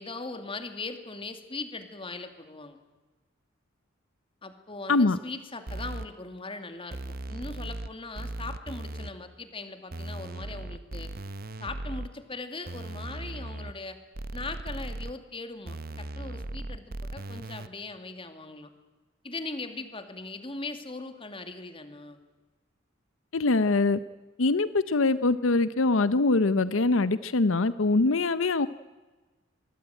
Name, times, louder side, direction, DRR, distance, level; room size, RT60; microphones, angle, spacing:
voice 1, 0.0-2.8 4.4-7.0 7.3-11.1 11.6-14.0 14.3-18.7 19.2-22.2, left 3 dB, 25° left, 8 dB, 2.4 m, -40 dB
sound 1, 5.7-6.1 6.9-7.9 8.2-9.1 9.9-12.1 12.7-13.7 14.2-15.1 15.7-17.7, right 1 dB, 50° right, 1.0 m, -37 dB
voice 2, 23.3-24.0 24.4-28.7, left 3 dB, 75° left, 15 dB, 0.7 m, -23 dB
24.5 x 22.0 x 9.1 m, 1.2 s
head